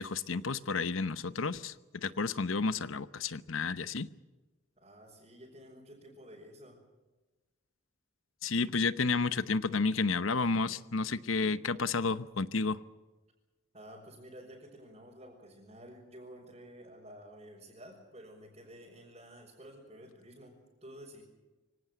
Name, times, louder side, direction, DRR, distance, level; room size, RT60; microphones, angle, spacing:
voice 1, 0.0-4.1 8.4-12.8, left 4 dB, 85° left, 15 dB, 0.9 m, -31 dB
voice 2, 4.8-6.8 13.7-21.2, equal, 30° right, -4 dB, 4.9 m, -51 dB
24.5 x 17.5 x 7.9 m, 1.2 s
head